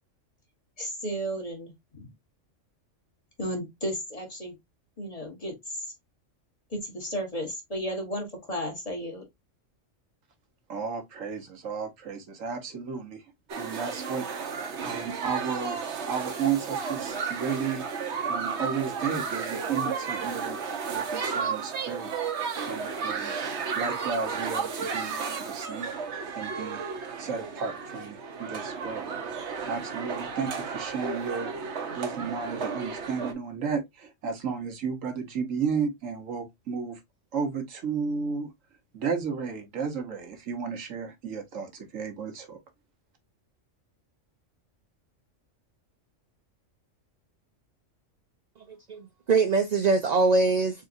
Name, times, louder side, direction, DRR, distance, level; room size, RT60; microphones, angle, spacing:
voice 1, 0.8-2.1 3.4-4.5 5.0-5.5 6.7-9.2, equal, 30° left, 1.5 m, -33 dB
voice 2, 10.7-13.2 13.5-14.3 14.8-17.9 18.3-22.1 22.4-23.3 23.7-25.1 25.4-25.9 26.4-26.8 27.2-29.1 29.7-31.5 31.9-37.0 37.3-38.5 38.9-42.6, right 6 dB, 90° right, 1.5 m, -33 dB
sound 1, 13.5-33.3, right 5 dB, 65° right, 1.1 m, -33 dB
voice 3, 48.6-50.9, right 3 dB, 45° right, 0.5 m, -24 dB
4.1 x 3.7 x 2.6 m
omnidirectional pair, 1.3 m